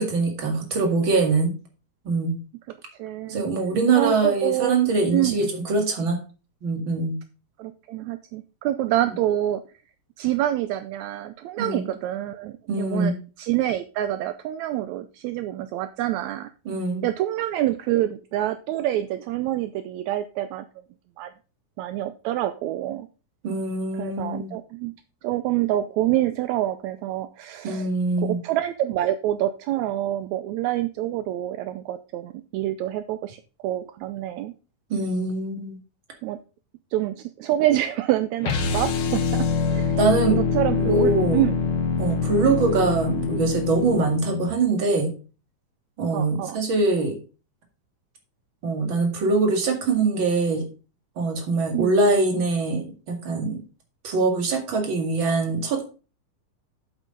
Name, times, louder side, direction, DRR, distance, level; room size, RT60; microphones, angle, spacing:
voice 1, 0.0-1.5 2.1-2.4 3.3-6.2 6.6-7.2 11.6-11.8 12.7-13.1 16.7-17.0 23.4-24.5 27.6-28.4 34.9-35.8 40.0-40.4 40.8-41.4 42.0-45.1 46.0-47.2 48.6-50.6 51.2-53.6 54.0-55.9, right 3 dB, 40° right, 3 dB, 2.5 m, -23 dB
voice 2, 3.0-3.4 4.0-4.8 5.1-5.5 7.6-9.6 10.2-16.5 17.0-20.7 21.2-21.3 21.8-23.1 23.9-24.9 25.2-27.9 28.2-34.5 36.2-36.4 36.9-40.0 40.3-41.6 46.1-46.6 51.7-51.9, right 13 dB, 80° right, 11 dB, 1.7 m, -26 dB
sound 1, 38.4-44.5, left 5 dB, 75° left, 1.2 m, -25 dB
8.3 x 8.1 x 3.8 m, 0.34 s
omnidirectional pair, 3.7 m